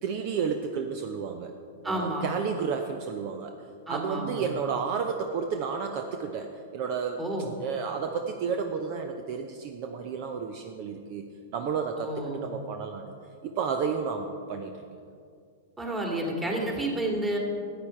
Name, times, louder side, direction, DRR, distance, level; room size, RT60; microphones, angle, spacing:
voice 1, 0.0-1.5 1.8-3.6 3.9-7.2 7.6-13.1 13.4-14.8, right 6 dB, 45° right, 5 dB, 0.7 m, -32 dB
voice 2, 1.8-2.2 3.9-4.5 7.2-7.5 12.0-12.4 15.8-17.4, right 1 dB, 15° right, 0 dB, 2.2 m, -30 dB
13.0 x 8.6 x 4.4 m, 2.3 s
figure-of-eight pair, 105°, 0 cm